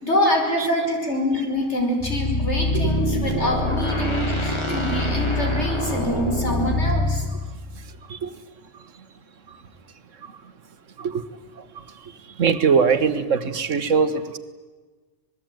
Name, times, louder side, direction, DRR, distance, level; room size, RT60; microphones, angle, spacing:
voice 1, 0.0-7.3, left 1 dB, 65° left, 2 dB, 5.6 m, -25 dB
sound 1, 2.0-7.3, left 1 dB, 20° left, 3.2 m, -24 dB
voice 2, 12.4-14.2, right 6 dB, 85° right, 12 dB, 1.7 m, -21 dB
26.0 x 20.5 x 9.2 m, 1.3 s
omnidirectional pair, 1.3 m